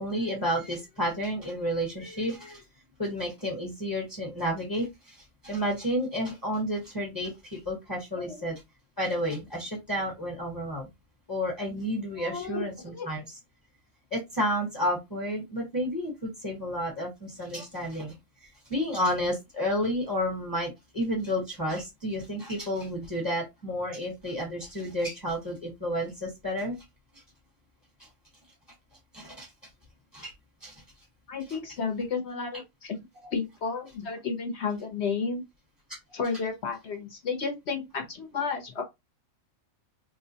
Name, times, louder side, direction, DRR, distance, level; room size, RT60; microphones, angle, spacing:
voice 1, 0.0-2.6 3.0-8.6 9.0-10.9 11.3-13.4 14.1-18.1 18.7-26.8 29.1-29.5 30.1-30.3 30.6-30.8, equal, 15° left, 1.0 m, -31 dB
voice 2, 12.2-13.1 17.5-17.6 31.3-33.0 33.3-35.4 36.1-38.8, left 5 dB, 55° left, 1.0 m, -32 dB
4.2 x 2.2 x 2.8 m
omnidirectional pair, 1.6 m